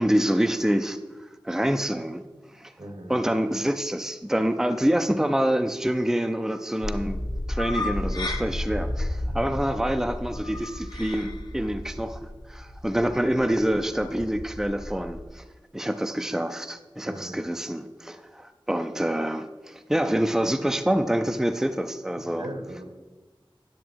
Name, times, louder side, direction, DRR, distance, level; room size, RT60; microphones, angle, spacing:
voice 1, 0.0-2.2 2.5-2.7 3.1-7.2 7.5-12.2 12.5-15.4 15.7-22.5, equal, 5° right, 8 dB, 0.5 m, -26 dB
voice 2, 2.8-3.1 17.1-17.4 22.2-22.8, right 1 dB, 75° right, 4 dB, 1.5 m, -38 dB
sound 1, 6.8-15.2, left 1 dB, 50° left, 1.0 m, -33 dB
10.0 x 6.7 x 4.6 m, 1.3 s
wide cardioid pair, 50°, 9 cm